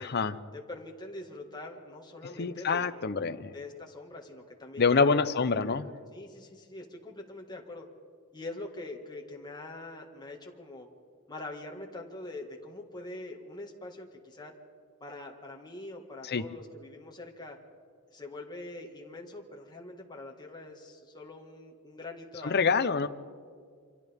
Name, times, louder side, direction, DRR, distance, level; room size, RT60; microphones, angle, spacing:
voice 1, 0.0-0.3 2.2-3.5 4.8-5.9 16.2-16.4 22.4-23.1, left 4 dB, 50° left, 12 dB, 0.7 m, -26 dB
voice 2, 0.5-2.9 3.5-5.8 6.1-7.9 8.3-10.9 11.3-14.5 15.0-17.6 18.1-22.8, left 2 dB, 20° left, 0 dB, 1.9 m, -44 dB
29.0 x 25.5 x 3.6 m, 2.1 s
head